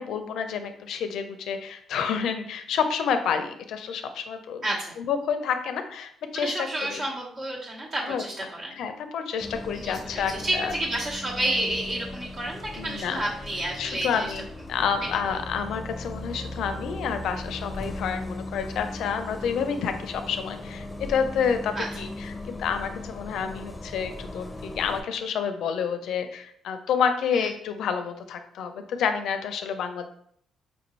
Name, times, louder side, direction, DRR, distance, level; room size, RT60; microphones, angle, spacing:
voice 1, 0.0-4.6 5.0-7.0 8.0-8.2 8.7-10.7 12.8-13.2 13.8-30.1, left 7 dB, 75° left, 8 dB, 0.4 m, -29 dB
voice 2, 4.6-4.9 6.3-8.8 9.7-14.3 21.7-21.9 27.3-27.5, right 1 dB, 55° right, -6 dB, 1.0 m, -30 dB
Bus, 9.4-25.0, left 2 dB, 15° left, 0.5 m, -38 dB
4.8 x 2.6 x 3.1 m, 0.65 s
cardioid pair, 90°, 0 cm